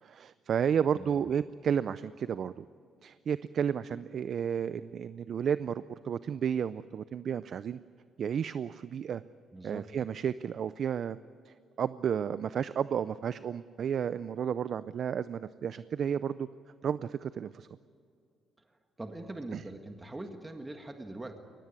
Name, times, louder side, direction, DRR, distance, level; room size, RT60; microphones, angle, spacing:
voice 1, 0.0-2.6 3.0-7.8 8.2-9.2 9.6-11.2 11.4-16.5 16.8-17.7 19.5-19.6, right 8 dB, 60° right, 15 dB, 0.5 m, -32 dB
voice 2, 9.5-9.9 19.0-21.4, right 2 dB, 20° right, 5 dB, 1.7 m, -42 dB
22.5 x 19.0 x 9.6 m, 2.3 s
cardioid pair, 90°, 0 cm